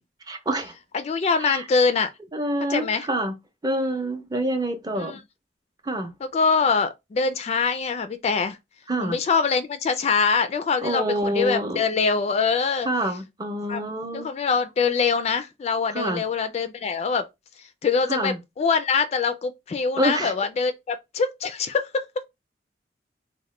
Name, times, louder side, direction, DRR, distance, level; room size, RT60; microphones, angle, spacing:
voice 1, 0.3-0.7 1.4-1.6 2.3-3.4 3.6-5.2 5.8-6.1 8.9-9.2 10.8-11.8 12.9-14.3 15.9-16.2 18.1-18.4 20.0-20.3, right 1 dB, 20° right, 0.5 m, -27 dB
voice 2, 0.9-2.1 2.7-3.1 5.0-5.2 6.3-8.6 9.0-12.9 13.7-13.8 14.1-17.3 17.8-22.1, left 5 dB, 35° left, 0.3 m, -24 dB
2.9 x 2.1 x 3.1 m
head